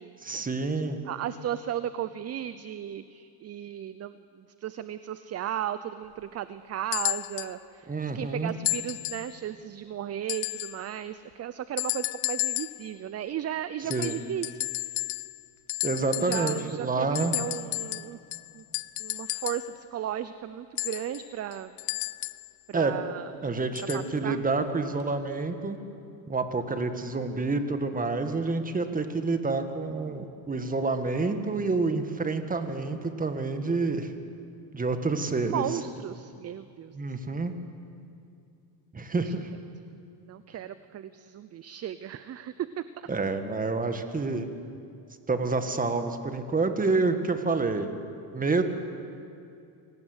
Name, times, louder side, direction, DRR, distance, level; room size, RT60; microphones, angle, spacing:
voice 1, 0.2-1.0 7.9-8.5 13.9-14.2 15.8-17.3 22.7-23.0 23.4-25.8 26.3-34.1 34.7-35.6 36.9-37.5 38.9-39.5 43.1-44.5 45.3-48.0 48.3-48.6, right 3 dB, 20° right, 8 dB, 1.8 m, -28 dB
voice 2, 1.1-14.6 16.2-18.2 18.5-18.6 19.0-21.7 22.7-23.3 23.8-24.4 35.2-37.0 39.1-39.3 40.2-43.1, right 10 dB, 35° right, 14 dB, 0.6 m, -35 dB
sound 1, 6.9-7.6 8.7-9.3 10.3-10.8 11.8-12.9 13.9-15.4 15.7-16.8 17.2-19.7 20.8-22.5 23.8-24.1 25.0-25.1, left 24 dB, 90° left, 0.7 m, -32 dB
26.5 x 18.5 x 8.1 m, 2.5 s
cardioid pair, 120°, 45 cm